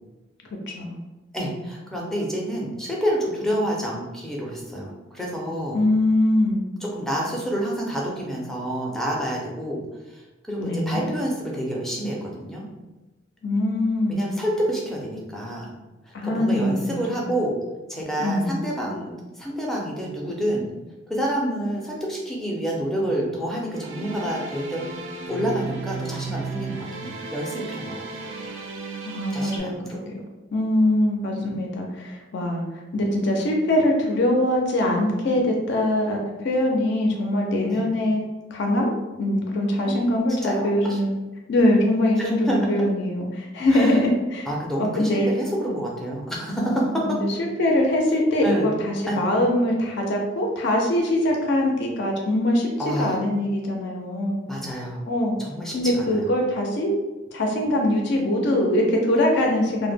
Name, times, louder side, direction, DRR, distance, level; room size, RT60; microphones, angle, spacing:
voice 1, 0.5-1.0 5.7-6.6 10.6-11.1 13.4-14.2 16.1-17.2 18.2-18.6 29.1-30.2 30.5-38.2 38.5-38.9 39.2-41.1 41.5-44.5 44.8-45.3 47.0-47.1 47.4-52.7 53.0-54.4 55.1-55.4 55.7-56.9 57.3-59.9, left 1 dB, 65° left, 1 dB, 0.4 m, -22 dB
voice 2, 1.3-5.9 6.8-9.8 10.1-10.2 10.5-12.7 14.1-15.7 16.1-17.6 17.9-20.7 21.1-24.8 25.3-28.2 29.3-30.0 37.7-37.9 39.8-40.0 40.4-41.0 42.2-42.6 43.7-44.0 44.5-47.2 48.4-48.7 49.1-49.2 52.8-53.1 54.4-55.0 55.4-56.3, equal, ahead, -3 dB, 0.4 m, -28 dB
sound 1, 23.7-29.6, right 4 dB, 75° right, 0.4 m, -34 dB
2.1 x 2.0 x 3.3 m, 1.1 s
head